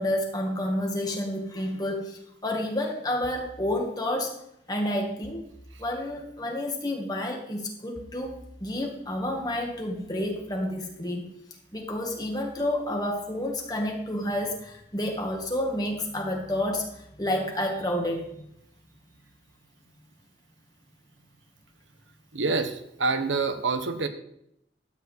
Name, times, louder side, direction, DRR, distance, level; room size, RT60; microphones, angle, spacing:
voice 1, 0.0-4.3 4.7-5.4 5.8-8.3 8.6-11.3 11.7-18.5, left 1 dB, 20° left, 1 dB, 2.0 m, -30 dB
sound 1, 3.2-3.7 5.2-6.2 8.0-19.3, equal, 5° left, 1.4 m, -55 dB
voice 2, 22.3-24.1, right 4 dB, 85° right, 8 dB, 1.1 m, -27 dB
12.5 x 4.9 x 8.2 m, 0.78 s
head